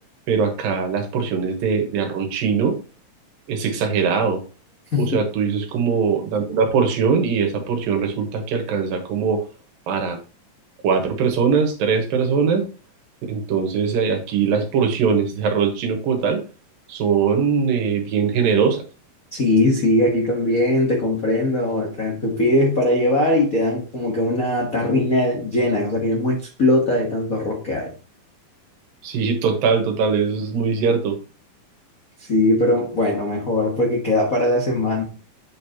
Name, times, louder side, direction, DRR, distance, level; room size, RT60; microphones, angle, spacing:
voice 1, 0.3-2.8 3.5-4.4 5.0-9.4 9.9-10.2 10.8-12.6 13.3-16.4 16.9-18.8 29.0-31.2, right 6 dB, 80° right, 3.0 m, -21 dB
voice 2, 19.3-27.9 32.2-35.0, left 1 dB, 75° left, 0.7 m, -20 dB
8.8 x 5.3 x 2.9 m
omnidirectional pair, 4.0 m